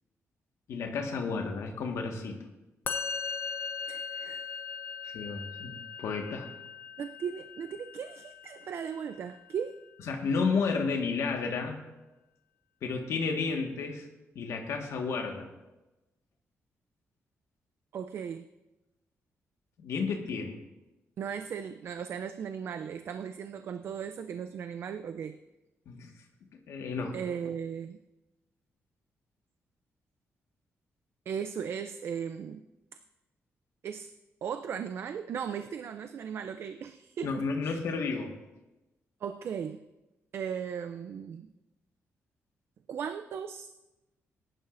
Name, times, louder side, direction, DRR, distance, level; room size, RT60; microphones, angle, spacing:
voice 1, 0.7-2.5 5.1-6.5 10.1-11.8 12.8-14.1 14.3-15.5 19.8-20.6 25.8-26.1 26.5-27.2 37.2-38.3, left 4 dB, 75° left, 2 dB, 1.6 m, -32 dB
Musical instrument, 2.8-10.1, left 5 dB, 45° left, 0.7 m, -40 dB
voice 2, 3.9-4.5 7.0-9.8 17.9-18.5 21.2-25.4 27.1-28.0 31.3-32.7 33.8-34.1 34.4-37.8 39.2-39.8 40.3-41.5 42.9-43.7, right 7 dB, 55° right, 10 dB, 0.4 m, -37 dB
20.5 x 11.0 x 2.6 m, 1.0 s
wide cardioid pair, 165°, 5 cm